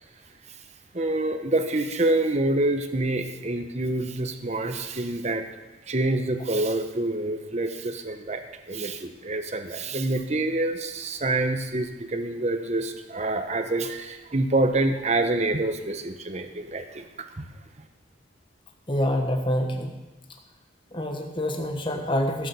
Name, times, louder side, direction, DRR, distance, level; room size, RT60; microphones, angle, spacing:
voice 1, 0.9-5.4 5.9-17.5, right 2 dB, 35° right, 7 dB, 1.0 m, -27 dB
voice 2, 18.9-19.9 20.9-22.5, left 1 dB, 25° left, 3 dB, 1.4 m, -26 dB
15.5 x 7.1 x 6.9 m, 1.1 s
head